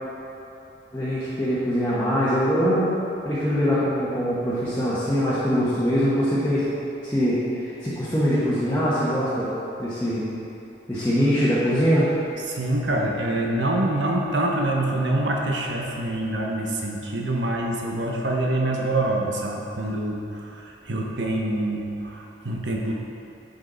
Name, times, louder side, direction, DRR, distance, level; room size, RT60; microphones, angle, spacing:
voice 1, 0.9-2.9 3.2-6.6 7.0-9.5 9.8-10.2 10.9-12.1, equal, 15° left, -12 dB, 1.2 m, -23 dB
voice 2, 12.4-22.9, right 1 dB, 85° right, 0 dB, 1.1 m, -25 dB
10.0 x 5.5 x 4.0 m, 2.8 s
head